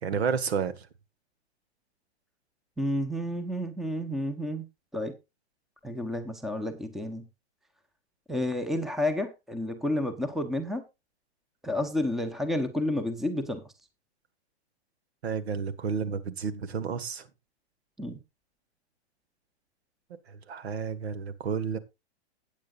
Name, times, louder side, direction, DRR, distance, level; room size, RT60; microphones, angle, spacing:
voice 1, 0.0-0.9 15.2-17.3 20.3-21.8, right 6 dB, 70° right, 14 dB, 1.9 m, -31 dB
voice 2, 2.8-4.6 4.9-5.1 5.8-7.2 8.3-10.8 11.6-13.6 18.0-18.2, left 1 dB, ahead, 11 dB, 0.9 m, -30 dB
16.0 x 9.1 x 2.5 m, 0.24 s
hypercardioid pair, 140°, 33 cm